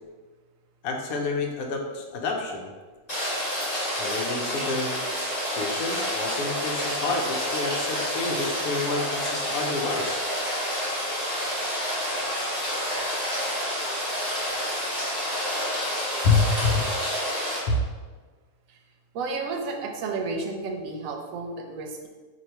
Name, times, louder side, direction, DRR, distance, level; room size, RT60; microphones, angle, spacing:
voice 1, 0.8-2.7 4.0-5.0 5.5-10.2 16.2-16.8 17.7-17.8, left 3 dB, 75° left, 2 dB, 1.0 m, -28 dB
Rain, 3.1-17.6, equal, 25° left, 1.5 m, -29 dB
voice 2, 19.1-22.1, right 3 dB, 70° right, 3 dB, 0.9 m, -32 dB
3.0 x 2.6 x 4.3 m, 1.4 s
omnidirectional pair, 1.6 m